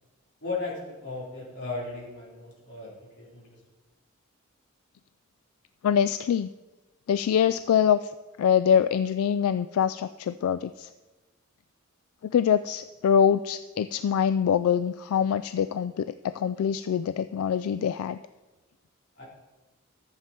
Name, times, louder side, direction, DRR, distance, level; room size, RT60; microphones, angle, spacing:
voice 1, 0.4-3.6 19.2-19.3, left 3 dB, 55° left, -5 dB, 3.6 m, -36 dB
voice 2, 5.8-6.5 7.1-8.1 8.4-10.9 12.3-18.2, left 8 dB, 85° left, 13 dB, 0.3 m, -24 dB
13.5 x 7.4 x 4.5 m, 1.2 s
head